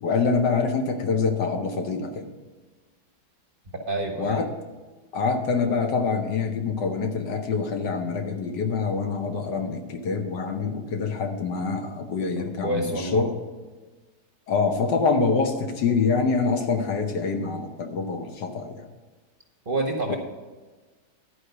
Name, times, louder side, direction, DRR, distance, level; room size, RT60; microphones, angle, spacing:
voice 1, 0.0-2.3 4.2-4.5 5.1-13.3 14.5-18.9 20.1-20.2, left 4 dB, 75° left, 4 dB, 1.6 m, -25 dB
voice 2, 3.7-4.4 12.4-13.2 19.7-20.1, right 2 dB, 40° right, 1 dB, 0.9 m, -28 dB
12.5 x 4.8 x 6.6 m, 1.3 s
omnidirectional pair, 1.9 m